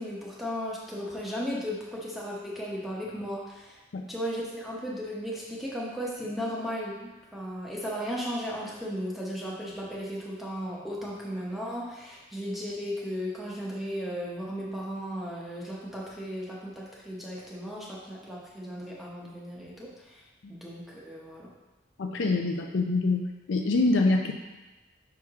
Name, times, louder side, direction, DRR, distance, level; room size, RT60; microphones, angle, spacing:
voice 1, 0.0-3.8 4.1-20.2 20.5-21.5, equal, ahead, -6 dB, 0.8 m, -35 dB
voice 2, 22.0-23.2 23.5-24.3, left 3 dB, 75° left, 3 dB, 0.5 m, -25 dB
5.8 x 4.7 x 3.6 m, 1.1 s
head